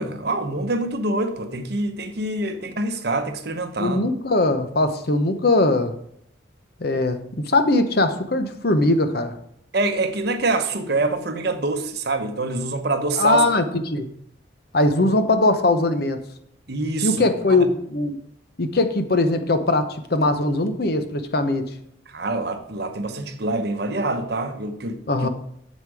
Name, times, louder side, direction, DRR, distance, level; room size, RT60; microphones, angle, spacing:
voice 1, 0.0-4.0 9.7-13.4 16.7-17.6 22.1-25.0, right 2 dB, 55° right, 0.9 m, -25 dB
voice 2, 3.8-5.9 6.8-7.2 7.5-9.4 13.2-14.1 14.7-16.2 17.0-18.2 18.6-21.7 25.1-25.3, left 2 dB, 50° left, 0.9 m, -20 dB
8.3 x 7.3 x 4.8 m
head